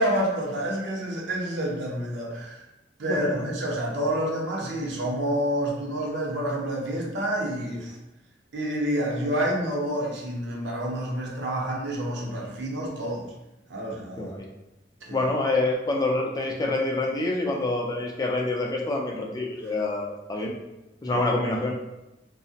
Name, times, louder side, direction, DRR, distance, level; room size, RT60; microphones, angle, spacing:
voice 1, 0.0-2.6 3.0-8.0 8.5-13.3 13.7-14.3 15.1-15.2 21.1-21.2, right 1 dB, 75° right, -2 dB, 0.6 m, -28 dB
voice 2, 3.1-3.5 14.2-14.5 15.1-20.5 21.0-21.7, left 2 dB, 20° left, -1 dB, 0.3 m, -26 dB
2.8 x 2.0 x 2.7 m, 0.96 s
head